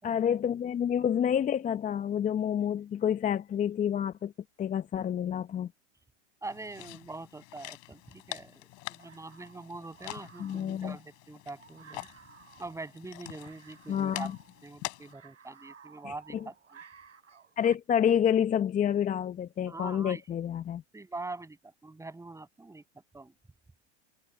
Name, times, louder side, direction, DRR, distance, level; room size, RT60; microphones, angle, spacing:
voice 1, 0.0-4.3 4.6-5.7 10.4-11.0 13.9-14.3 16.0-16.1 17.6-20.8, left 9 dB, 20° left, 0.9 m, -28 dB
sound 1, 6.4-15.1, left 31 dB, 50° left, 6.9 m, -45 dB
voice 2, 6.4-12.1 12.6-14.4 14.6-16.8 19.7-20.2 20.9-22.8 23.1-23.3, right 2 dB, 10° right, 6.9 m, -43 dB
sound 2, 7.9-17.7, right 6 dB, 85° right, 5.4 m, -57 dB
hypercardioid pair, 100°, 36 cm